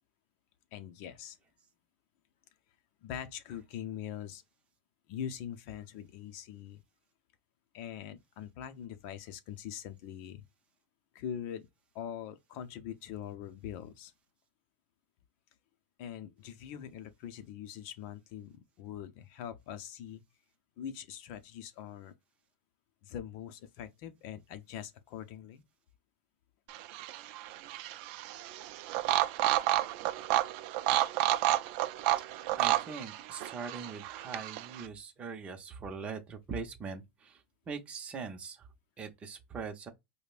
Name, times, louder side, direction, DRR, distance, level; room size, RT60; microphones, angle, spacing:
voice 1, 0.7-1.4 3.0-4.4 5.1-6.8 7.7-10.4 11.1-11.7 11.9-14.1 16.0-20.2 20.8-22.1 23.0-25.6, left 9 dB, 45° left, 0.7 m, -43 dB
sound 1, 26.7-34.8, right 14 dB, 50° right, 0.4 m, -31 dB
voice 2, 32.6-38.7 39.0-39.9, right 5 dB, 20° right, 0.8 m, -42 dB
5.1 x 2.2 x 2.4 m
supercardioid pair, 150°, 7 cm